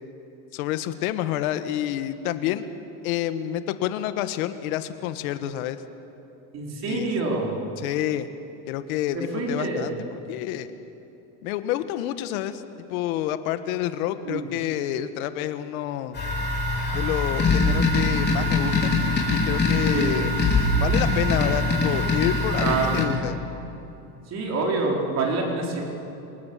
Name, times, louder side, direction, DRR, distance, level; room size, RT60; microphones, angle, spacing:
voice 1, 0.5-2.7 3.0-5.8 6.9-7.1 7.8-8.3 8.7-10.7 11.4-16.2 16.9-18.9 19.3-20.4 20.8-23.4, left 12 dB, 85° left, 10 dB, 1.6 m, -28 dB
voice 2, 6.5-7.6 9.1-9.9 14.3-14.5 19.9-20.1 22.6-23.0 24.3-25.8, right 3 dB, 40° right, 0 dB, 4.8 m, -26 dB
sound 1, 16.1-23.0, left 2 dB, 25° left, 4.8 m, -23 dB
27.0 x 19.5 x 7.6 m, 3.0 s
cardioid pair, 140°, 42 cm